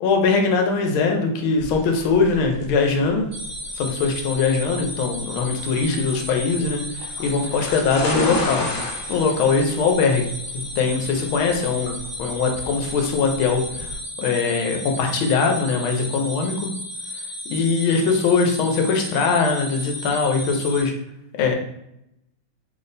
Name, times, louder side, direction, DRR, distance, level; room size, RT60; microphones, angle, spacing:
voice 1, 0.0-3.2 3.8-8.7 9.1-13.9 14.2-16.7 17.5-20.9 21.4-21.5, left 4 dB, 90° left, 2 dB, 1.4 m, -21 dB
sound 1, 1.6-13.9, left 2 dB, 70° left, 1.5 m, -33 dB
sound 2, 3.3-20.8, left 1 dB, 25° right, 0.9 m, -34 dB
3.4 x 2.1 x 3.9 m, 0.80 s
omnidirectional pair, 2.3 m